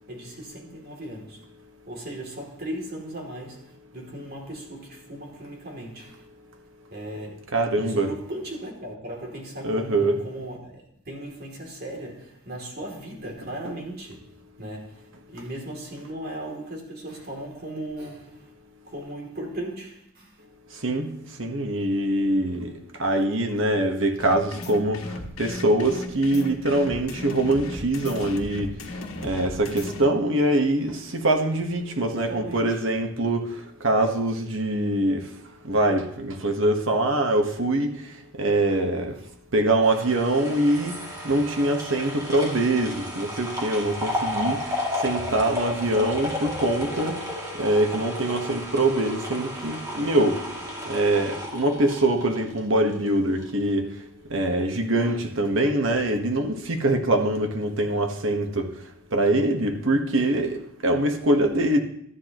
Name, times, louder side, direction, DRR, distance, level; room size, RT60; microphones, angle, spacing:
voice 1, 0.1-1.4 1.9-6.3 6.9-14.3 14.6-18.5 18.8-20.4 32.1-32.8 39.1-39.2, right 1 dB, 50° right, 2.8 m, -37 dB
voice 2, 7.5-8.2 9.6-10.4 13.4-13.8 20.7-21.1 21.4-22.7 23.0-25.1 25.4-28.7 29.2-35.3 35.6-38.1 38.4-39.1 39.5-41.0 41.2-44.8 45.0-47.2 47.5-53.9 54.3-58.7 59.1-61.8, right 1 dB, 65° right, 1.3 m, -24 dB
sound 1, 24.2-30.0, left 2 dB, 90° left, 1.4 m, -35 dB
sound 2, 39.8-53.1 53.4-53.5, left 1 dB, 15° right, 2.5 m, -33 dB
12.5 x 9.8 x 3.0 m
head